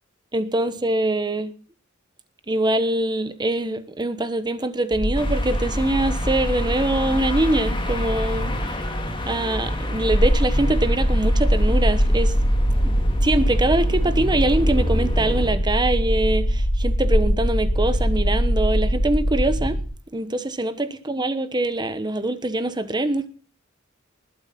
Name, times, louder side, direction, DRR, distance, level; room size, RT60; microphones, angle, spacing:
voice 1, 0.3-1.5 2.5-8.5 9.3-12.3 12.8-12.9 13.2-19.8 20.1-23.3, right 2 dB, 20° right, 11 dB, 1.1 m, -23 dB
sound 1, 4.9-19.8, equal, 40° left, 3.0 m, -22 dB
sound 2, 5.1-15.5, left 1 dB, 25° left, 2.7 m, -32 dB
20.0 x 9.0 x 5.9 m, 0.41 s
head